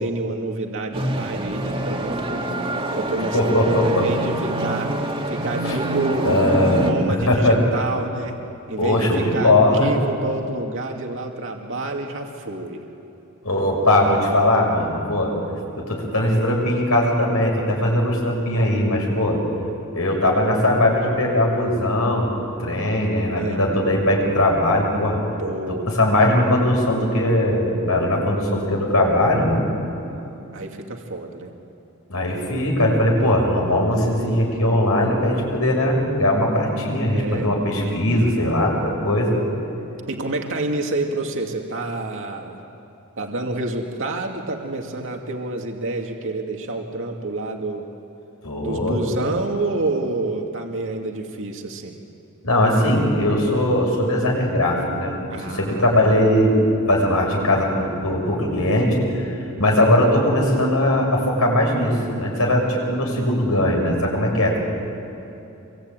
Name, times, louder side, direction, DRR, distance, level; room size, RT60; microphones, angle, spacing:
voice 1, 0.0-2.4 2.9-4.9 5.3-6.4 6.8-8.4 8.7-12.8 23.3-23.6 25.4-25.9 30.5-31.5 37.1-37.5 40.1-42.6 43.2-47.8 48.6-52.0 55.3-56.1, right 2 dB, 60° right, 2 dB, 2.4 m, -28 dB
sound 1, 0.9-6.9, right 1 dB, 25° right, 2.4 m, -26 dB
voice 2, 3.3-4.0 5.6-5.8 6.3-6.9 7.3-7.6 8.8-9.9 13.4-15.3 15.7-19.4 19.9-22.3 22.6-25.2 25.7-29.6 32.1-39.3 48.4-49.0 52.4-56.5 56.9-59.3 59.6-64.6, left 1 dB, 70° left, 0 dB, 7.0 m, -20 dB
26.5 x 23.5 x 9.1 m, 3.0 s
head